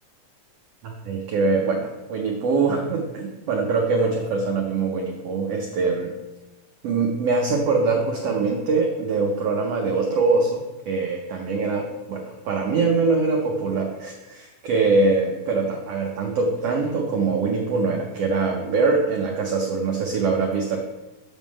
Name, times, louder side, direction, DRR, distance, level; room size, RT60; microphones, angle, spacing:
voice 1, 0.8-6.1 6.8-20.8, right 4 dB, 80° right, 0 dB, 1.4 m, -23 dB
7.7 x 3.6 x 6.2 m, 1.0 s
omnidirectional pair, 3.7 m